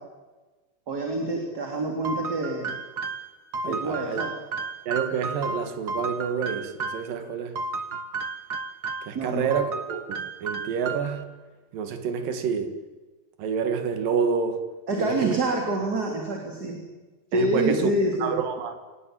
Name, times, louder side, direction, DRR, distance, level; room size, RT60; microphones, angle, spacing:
voice 1, 0.9-2.7 3.6-4.3 9.1-9.5 14.9-16.8 17.3-18.4, right 1 dB, 30° right, 2 dB, 3.3 m, -27 dB
sound 1, 2.0-7.1 7.6-9.2 9.5-11.2, right 3 dB, 55° right, 1.1 m, -33 dB
voice 2, 3.6-4.2 4.9-7.6 9.0-11.3 11.7-12.8 13.4-14.6 14.9-15.4 17.3-17.9 18.2-18.8, right 6 dB, 80° right, 7 dB, 3.6 m, -28 dB
28.0 x 17.5 x 9.0 m, 1.2 s
omnidirectional pair, 3.9 m